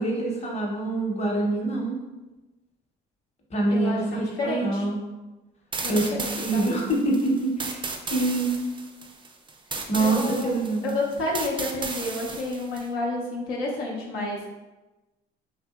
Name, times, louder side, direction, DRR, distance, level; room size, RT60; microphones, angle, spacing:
voice 1, 0.0-2.0 3.5-5.0 5.9-7.8 8.1-8.5 9.9-10.9, right 2 dB, 30° left, -2 dB, 0.8 m, -25 dB
voice 2, 3.7-4.8 5.8-6.6 10.0-10.6 10.8-14.5, left 2 dB, 80° left, -3 dB, 0.6 m, -30 dB
sound 1, 5.7-12.9, right 3 dB, 25° right, 0.4 m, -35 dB
2.7 x 2.6 x 2.3 m, 1.1 s
supercardioid pair, 65°, 21 cm